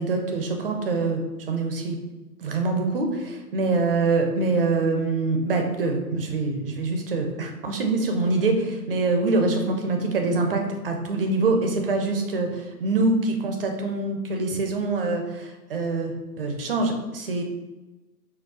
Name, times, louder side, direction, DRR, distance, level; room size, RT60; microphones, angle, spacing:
voice 1, 0.0-2.0 2.4-17.4, right 3 dB, 35° right, 3 dB, 0.6 m, -25 dB
4.4 x 2.4 x 4.6 m, 1.1 s
hypercardioid pair, 145°, 49 cm